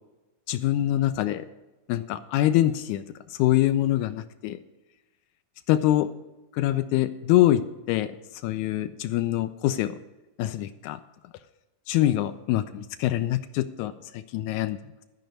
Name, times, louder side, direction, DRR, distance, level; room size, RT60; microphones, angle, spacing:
voice 1, 0.5-1.5 1.9-3.0 3.3-4.6 5.7-6.1 6.5-7.6 7.9-8.2 8.4-10.0 10.4-11.0 11.9-14.8, left 14 dB, 80° left, 10 dB, 1.7 m, -24 dB
12.5 x 5.2 x 7.9 m, 1.1 s
omnidirectional pair, 3.8 m